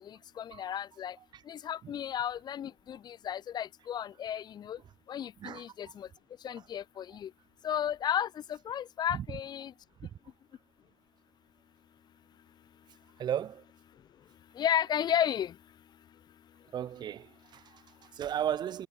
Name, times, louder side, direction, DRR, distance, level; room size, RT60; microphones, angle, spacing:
voice 1, 0.4-1.1 1.5-4.8 5.1-6.1 6.4-7.3 7.6-9.7 14.6-15.5, left 9 dB, 35° left, 3.0 m, -33 dB
voice 2, 5.4-5.9 6.5-6.7 7.1-7.2 9.1-9.3 10.0-10.1 13.2-13.6 16.7-18.9, right 10 dB, 35° right, 4.1 m, -36 dB
figure-of-eight pair, 70°, 13 cm